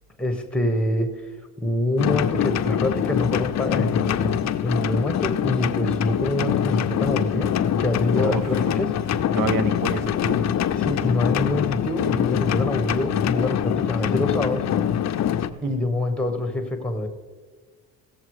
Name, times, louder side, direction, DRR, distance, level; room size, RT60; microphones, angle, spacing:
voice 1, 0.2-1.2 1.6-7.5 7.8-9.0 10.7-14.7 15.6-17.1, left 1 dB, 5° left, 5 dB, 1.2 m, -25 dB
sound 1, 2.0-15.5, left 9 dB, 50° left, 0.5 m, -24 dB
voice 2, 8.1-8.6 9.1-10.5 15.5-15.8, right 5 dB, 60° right, 13 dB, 0.8 m, -30 dB
16.0 x 7.1 x 4.8 m, 1.4 s
cardioid pair, 125°, 36 cm